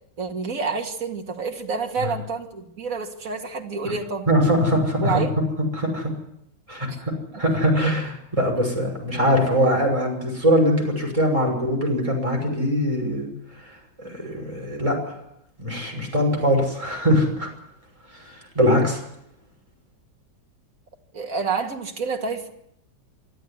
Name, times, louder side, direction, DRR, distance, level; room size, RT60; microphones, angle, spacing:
voice 1, 0.2-4.3 5.0-5.3 6.9-7.0 7.3-7.4 21.1-22.5, right 4 dB, 45° right, 3 dB, 2.6 m, -28 dB
voice 2, 4.3-5.2 5.7-6.1 6.7-7.1 7.4-13.3 14.0-15.1 15.6-17.5 18.2-19.0, equal, 15° right, 1 dB, 6.3 m, -22 dB
24.0 x 13.5 x 9.8 m, 0.76 s
omnidirectional pair, 2.0 m